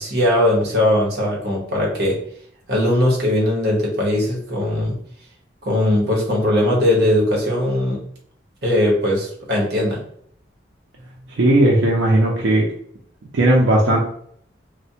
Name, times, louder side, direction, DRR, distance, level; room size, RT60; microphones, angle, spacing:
voice 1, 0.0-2.1 2.7-5.0 5.6-8.0 8.6-10.0, left 1 dB, 60° right, -3 dB, 1.0 m, -19 dB
voice 2, 11.4-12.7 13.3-14.0, right 1 dB, 90° right, -3 dB, 0.5 m, -16 dB
3.2 x 2.1 x 2.7 m, 0.65 s
head